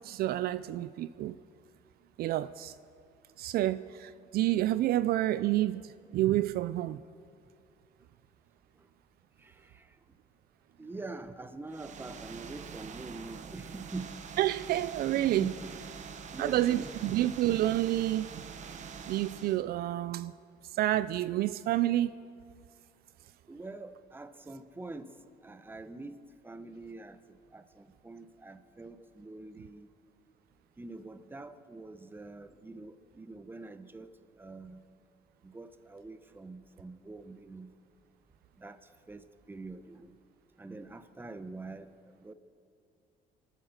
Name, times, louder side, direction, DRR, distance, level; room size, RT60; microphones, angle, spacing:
voice 1, 0.0-1.4 2.2-2.7 3.4-7.0 14.4-15.5 16.4-18.4 19.1-20.3 20.7-22.1, right 14 dB, 65° right, 0.4 m, -29 dB
voice 2, 9.4-10.0 10.8-14.2 15.1-15.7 16.0-17.1 23.5-25.1 25.4-29.9 30.8-34.1 34.4-34.8 35.4-37.7 38.6-40.2 40.6-42.3, right 3 dB, 10° right, 0.8 m, -45 dB
sound 1, 11.7-19.6, right 6 dB, 45° right, 1.0 m, -45 dB
25.0 x 8.9 x 6.5 m
cardioid pair, 110°, 17 cm